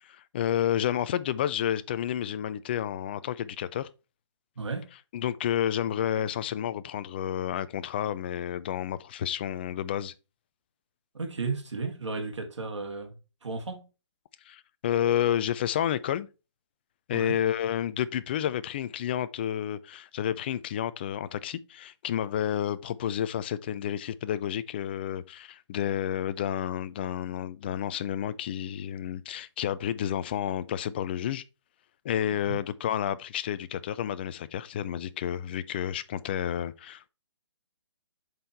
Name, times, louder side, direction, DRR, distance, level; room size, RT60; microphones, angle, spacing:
voice 1, 0.0-3.9 5.1-10.1 14.5-16.3 17.1-31.4 32.0-37.1, left 10 dB, 20° left, 0.3 m, -30 dB
voice 2, 4.6-4.9 11.1-13.1 13.4-13.9 17.1-17.4 32.4-32.6, right 4 dB, 80° right, 2.3 m, -34 dB
7.6 x 4.3 x 4.5 m
hypercardioid pair, 150°, 15 cm